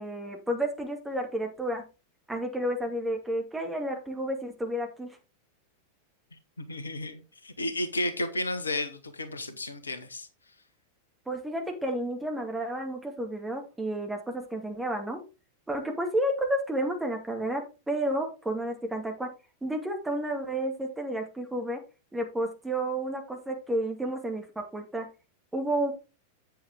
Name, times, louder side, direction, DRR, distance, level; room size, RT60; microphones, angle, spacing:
voice 1, 0.0-1.8 2.3-5.1 11.3-15.2 15.7-19.3 19.6-21.8 22.1-25.1 25.5-25.9, right 1 dB, 10° right, 2.4 m, -31 dB
voice 2, 6.6-10.3, left 1 dB, 75° left, 1.2 m, -33 dB
8.3 x 7.7 x 3.6 m
figure-of-eight pair, 90°, 0 cm